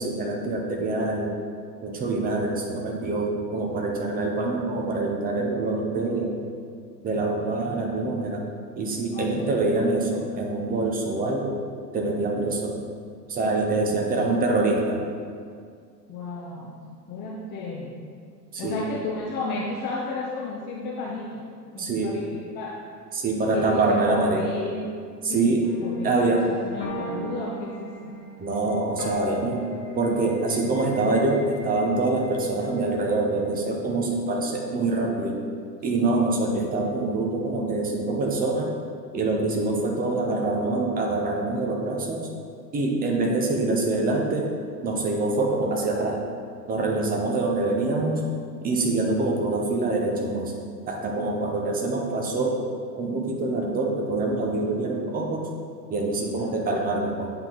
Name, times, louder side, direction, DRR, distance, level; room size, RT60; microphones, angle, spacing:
voice 1, 0.0-1.3 1.8-6.3 7.0-8.4 8.8-11.5 11.9-12.8 13.3-15.1 18.5-18.8 21.8-22.2 23.1-24.4 25.2-25.6 26.0-26.5 28.4-29.6 29.9-35.4 35.8-38.8 39.1-42.3 42.7-44.5 44.8-46.2 46.7-48.2 48.6-50.5 50.9-52.6 52.9-55.5 55.9-57.3, right 2 dB, 20° right, 0 dB, 0.7 m, -25 dB
voice 2, 9.1-9.6 14.1-14.4 16.1-16.7 17.1-18.0 18.6-21.4 21.7-22.8 23.4-24.9 25.3-28.1 56.3-56.6, left 3 dB, 20° left, -2 dB, 0.5 m, -33 dB
sound 1, 25.6-32.4, equal, 45° left, 1.3 m, -38 dB
7.9 x 4.3 x 3.9 m, 2.1 s
figure-of-eight pair, 85°, 50 cm